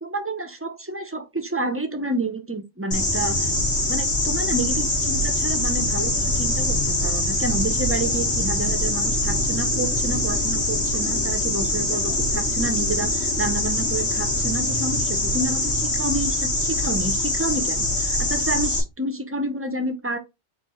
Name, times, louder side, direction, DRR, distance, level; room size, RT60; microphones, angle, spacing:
voice 1, 0.0-3.5 3.9-20.2, right 2 dB, 15° right, 0.5 m, -29 dB
sound 1, 2.9-18.8, left 1 dB, 90° left, 2.0 m, -23 dB
4.4 x 2.7 x 4.3 m
omnidirectional pair, 1.1 m